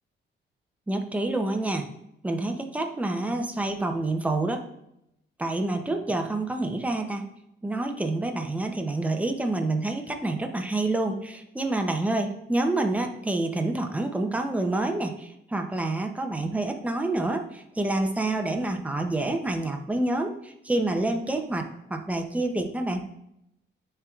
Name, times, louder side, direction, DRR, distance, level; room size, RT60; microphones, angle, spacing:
voice 1, 0.9-1.9 2.2-4.6 5.4-7.3 7.6-23.1, right 2 dB, 5° right, 4 dB, 0.5 m, -28 dB
10.0 x 4.5 x 2.3 m, 0.80 s
wide cardioid pair, 170°, 19 cm